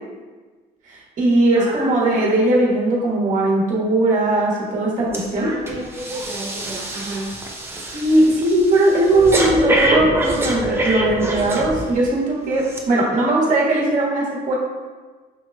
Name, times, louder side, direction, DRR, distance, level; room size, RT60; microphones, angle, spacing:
voice 1, 0.9-5.5 7.8-14.5, right 2 dB, 50° right, -5 dB, 1.4 m, -19 dB
voice 2, 1.5-1.9 5.3-7.3, right 1 dB, 70° right, -7 dB, 1.1 m, -31 dB
Breathing, 5.1-5.3 5.7-12.1 12.7-12.8, right 1 dB, 15° right, 0.6 m, -24 dB
6.2 x 3.0 x 2.3 m, 1.4 s
cardioid pair, 110°, 17 cm